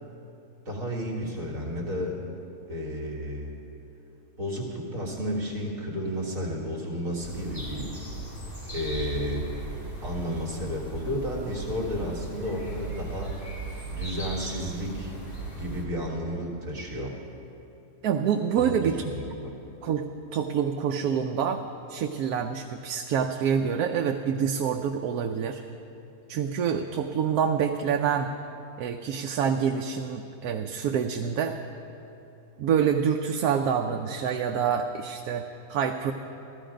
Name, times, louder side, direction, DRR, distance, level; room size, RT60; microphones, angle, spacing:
voice 1, 0.7-2.2 2.7-3.5 4.4-7.9 8.7-13.4 13.9-15.1 15.5-17.1 18.6-19.5, equal, 65° right, -2 dB, 2.2 m, -32 dB
sound 1, 7.2-15.8, right 2 dB, 35° left, 2.6 m, -37 dB
voice 2, 18.0-19.1 19.8-25.6 26.3-28.3 28.8-31.6 32.6-36.1, right 7 dB, 85° right, 5 dB, 1.1 m, -27 dB
14.5 x 14.0 x 5.1 m, 2.9 s
omnidirectional pair, 1.5 m